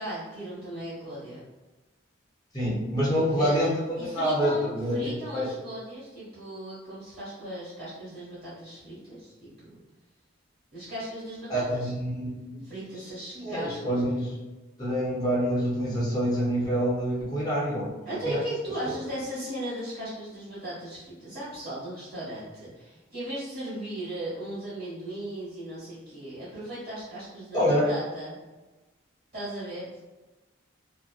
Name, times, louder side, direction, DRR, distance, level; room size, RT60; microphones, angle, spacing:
voice 1, 0.0-1.4 3.1-3.7 3.9-4.6 4.9-9.7 10.7-11.9 12.6-14.0 18.0-28.4 29.3-30.0, right 1 dB, 55° right, -12 dB, 1.2 m, -37 dB
voice 2, 2.5-5.5 11.5-12.6 13.3-14.4 14.8-18.4 27.5-27.9, equal, 20° left, -6 dB, 0.5 m, -27 dB
2.5 x 2.1 x 2.3 m, 1.1 s
head